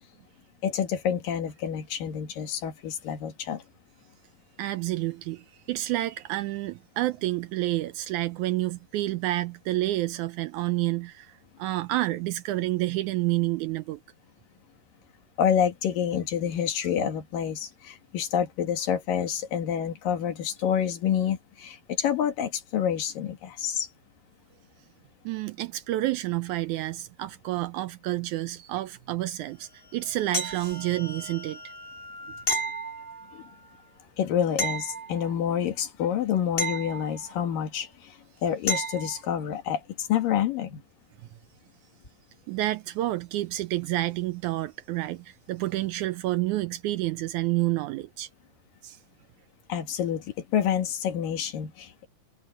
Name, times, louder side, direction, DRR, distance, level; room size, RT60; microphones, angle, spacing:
voice 1, 0.6-3.6 15.4-23.9 33.3-33.4 34.2-40.8 49.7-52.1, left 9 dB, 85° left, 3.7 m, -28 dB
voice 2, 4.6-14.0 25.3-31.6 42.5-48.3 48.8-49.0, right 16 dB, 80° right, 1.8 m, -29 dB
sound 1, 29.5-33.9, left 2 dB, 55° left, 7.0 m, -47 dB
sound 2, 30.3-31.1 32.5-33.5 34.6-35.6 36.6-37.6 38.7-39.3 42.0-42.1, equal, 20° left, 1.8 m, -32 dB
omnidirectional pair, 3.9 m